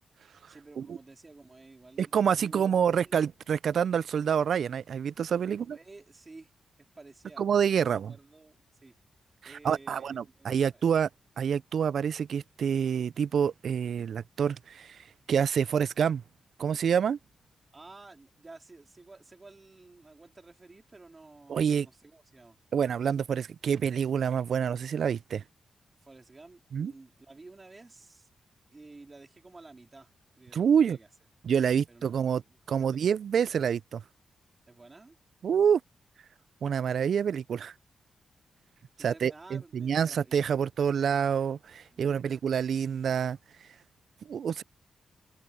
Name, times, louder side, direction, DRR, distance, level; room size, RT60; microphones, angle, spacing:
voice 1, 0.5-3.2 5.5-6.5 6.8-7.5 7.8-8.6 8.8-9.0 9.4-10.8 17.7-22.6 26.0-28.3 28.7-30.1 30.4-31.1 31.9-33.1 34.7-35.2 39.0-40.4 41.9-42.4, right 3 dB, 25° right, 3.7 m, -52 dB
voice 2, 2.0-5.8 7.4-8.1 9.4-11.1 11.4-16.2 16.6-17.2 21.5-21.9 22.7-25.4 26.7-26.9 30.5-31.0 31.4-32.4 32.7-34.0 35.4-35.8 36.6-37.7 39.0-43.4 44.3-44.6, right 7 dB, 65° right, 0.3 m, -27 dB
open air
wide cardioid pair, 125°, 0 cm